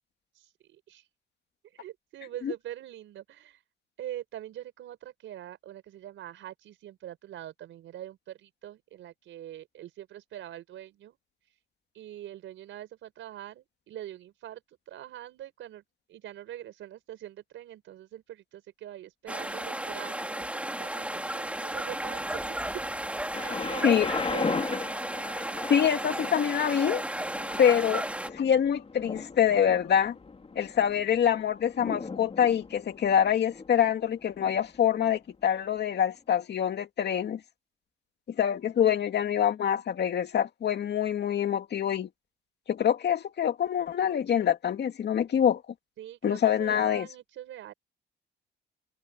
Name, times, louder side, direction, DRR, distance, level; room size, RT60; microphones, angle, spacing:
voice 1, 0.3-1.1 1.7-3.6 4.0-11.2 11.9-15.8 16.1-20.5 20.8-22.8 23.3-24.4 46.0-47.7, right 12 dB, 80° right, 4.9 m, -43 dB
sound 1, 19.3-28.3, right 1 dB, 5° right, 3.0 m, -34 dB
Thunder, 23.3-35.2 35.9-36.0, left 4 dB, 30° left, 4.2 m, -38 dB
voice 2, 25.7-27.0 27.6-28.0 28.3-30.2 30.6-37.4 38.3-42.1 42.7-45.6 46.2-47.1, left 9 dB, 60° left, 2.3 m, -25 dB
cardioid pair, 90°, 20 cm